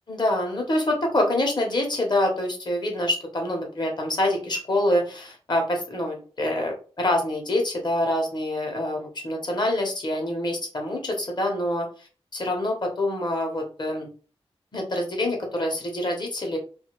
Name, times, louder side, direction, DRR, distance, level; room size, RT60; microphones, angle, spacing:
voice 1, 0.1-14.1 14.7-16.6, left 1 dB, 45° left, 1 dB, 1.0 m, -26 dB
2.6 x 2.5 x 3.1 m, 0.38 s
wide cardioid pair, 130°, 10 cm